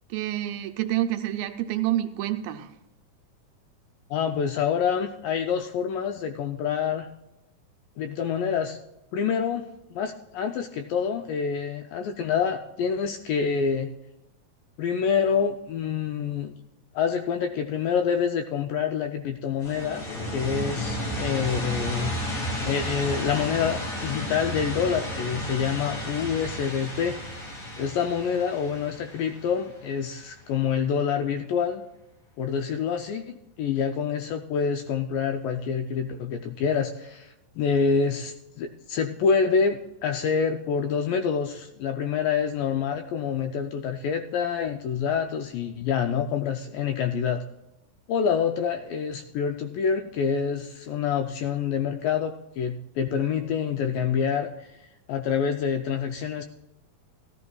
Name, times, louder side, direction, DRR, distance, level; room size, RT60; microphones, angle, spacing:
voice 1, 0.1-2.8, right 13 dB, 80° right, 5 dB, 2.3 m, -28 dB
voice 2, 4.1-7.1 8.0-8.8 9.1-13.9 14.8-16.5 17.0-20.1 20.3-22.1 22.7-27.2 27.8-31.8 32.4-47.4 48.1-54.7 55.1-56.4, left 6 dB, 80° left, 6 dB, 2.0 m, -27 dB
sound 1, 19.6-30.3, equal, 50° left, 4.1 m, -33 dB
16.5 x 13.0 x 2.3 m, 0.90 s
omnidirectional pair, 4.4 m